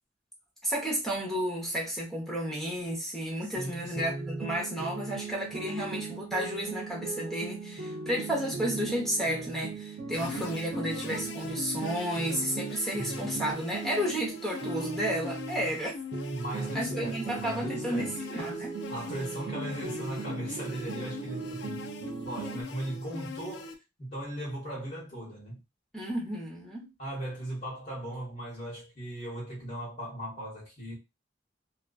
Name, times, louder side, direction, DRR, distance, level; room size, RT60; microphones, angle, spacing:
voice 1, 0.6-16.0 16.7-18.7 25.9-26.9, equal, ahead, 0.8 m, -32 dB
voice 2, 3.4-4.3 12.9-13.4 16.3-21.9 22.2-23.7 24.0-25.6 27.0-30.9, right 1 dB, 40° left, 1.0 m, -38 dB
sound 1, 4.0-15.8 16.1-22.6, right 4 dB, 50° right, 0.4 m, -38 dB
sound 2, 10.1-23.7, left 3 dB, 65° left, 0.3 m, -41 dB
2.4 x 2.2 x 2.2 m
head